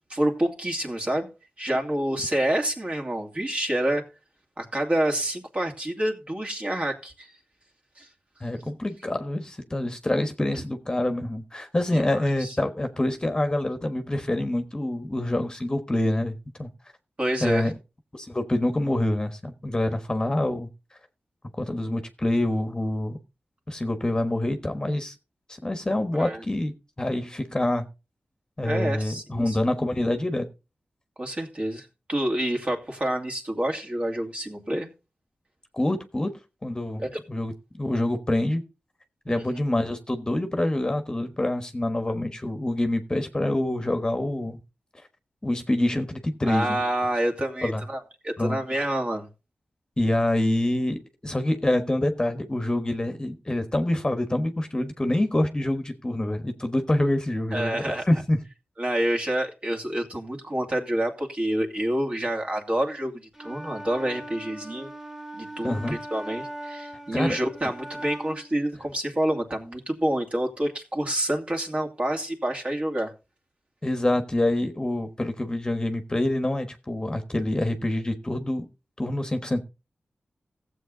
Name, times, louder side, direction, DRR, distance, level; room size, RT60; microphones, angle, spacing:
voice 1, 0.1-1.3 1.6-4.0 4.6-7.3 8.0-8.1 11.9-12.6 17.2-17.7 26.2-26.4 28.6-29.7 31.2-34.9 37.0-37.2 39.3-39.5 46.5-49.3 57.5-58.0 58.8-64.9 65.4-73.1, right 1 dB, 35° right, 2.6 m, -28 dB
voice 2, 8.4-16.7 17.4-17.7 18.1-20.7 21.6-23.2 23.7-25.1 25.5-26.7 27.0-27.8 28.6-30.5 35.7-36.3 36.6-37.0 37.3-37.5 37.8-38.6 39.3-44.6 45.4-46.8 47.6-47.8 48.4-48.8 50.0-58.4 65.6-66.0 67.1-67.4 73.8-78.7 79.0-79.6, left 1 dB, 20° left, 1.3 m, -26 dB
Wind instrument woodwind instrument, 63.3-68.5, right 1 dB, 15° right, 2.7 m, -39 dB
15.5 x 7.8 x 3.9 m
wide cardioid pair, 85°, 4 cm